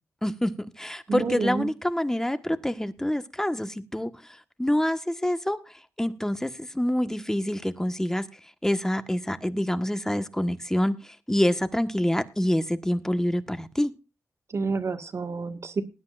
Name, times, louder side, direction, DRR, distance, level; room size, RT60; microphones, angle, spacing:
voice 1, 0.2-5.6 6.0-8.3 8.6-13.9, left 1 dB, 10° left, 1.4 m, -26 dB
voice 2, 1.1-1.7 14.5-15.8, right 4 dB, 55° right, 1.7 m, -29 dB
20.0 x 9.7 x 2.5 m
cardioid pair, 55°, 6 cm